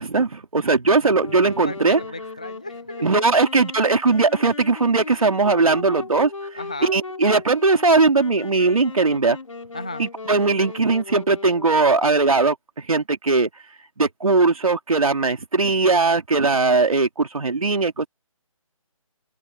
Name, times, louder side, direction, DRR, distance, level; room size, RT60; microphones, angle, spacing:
voice 1, 0.0-2.0 3.0-9.4 10.0-13.5 14.0-18.1, right 3 dB, 75° right, 3.3 m, -19 dB
Wind instrument woodwind instrument, 1.2-12.1, left 4 dB, 65° left, 5.3 m, -37 dB
voice 2, 1.6-3.3 6.6-6.9 9.7-10.0, left 2 dB, 10° left, 0.5 m, -34 dB
open air
hypercardioid pair, 175°, 18 cm